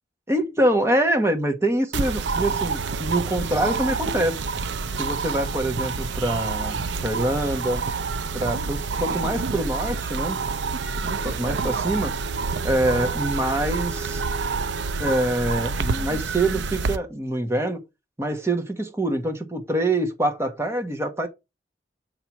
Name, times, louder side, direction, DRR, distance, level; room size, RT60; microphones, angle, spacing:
voice 1, 0.3-4.5 5.0-7.8 8.3-10.4 11.2-12.1 12.6-14.2 15.0-17.8 18.2-21.3, right 1 dB, 15° right, 1.2 m, -25 dB
sound 1, 1.9-17.0, right 4 dB, 75° right, 0.6 m, -28 dB
7.5 x 2.9 x 5.9 m
head